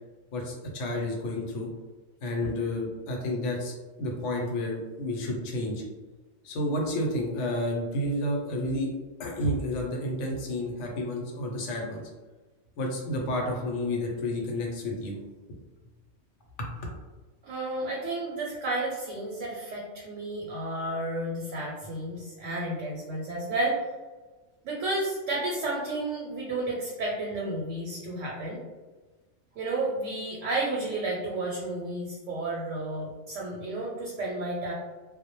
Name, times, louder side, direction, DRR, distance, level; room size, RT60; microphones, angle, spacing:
voice 1, 0.3-1.7 2.2-5.8 6.4-8.9 9.2-12.0 12.8-15.1 16.6-16.7, left 1 dB, 80° left, 0 dB, 0.9 m, -30 dB
voice 2, 17.4-23.8 24.6-28.6 29.5-34.7, right 2 dB, 85° right, -4 dB, 0.9 m, -32 dB
2.1 x 2.1 x 2.8 m, 1.2 s
omnidirectional pair, 1.2 m